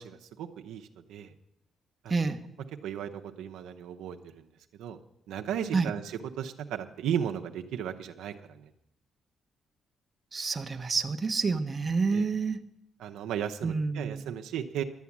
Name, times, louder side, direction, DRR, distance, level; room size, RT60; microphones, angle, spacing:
voice 1, 0.0-1.3 2.0-2.2 2.8-4.5 4.8-5.0 5.3-6.0 6.4-8.7 12.1-12.3 13.0-14.8, right 9 dB, 85° right, 5 dB, 0.8 m, -35 dB
voice 2, 10.3-12.6 13.6-14.3, right 4 dB, 30° right, 7 dB, 0.8 m, -28 dB
11.5 x 8.3 x 7.3 m, 0.79 s
cardioid pair, 90°, 0 cm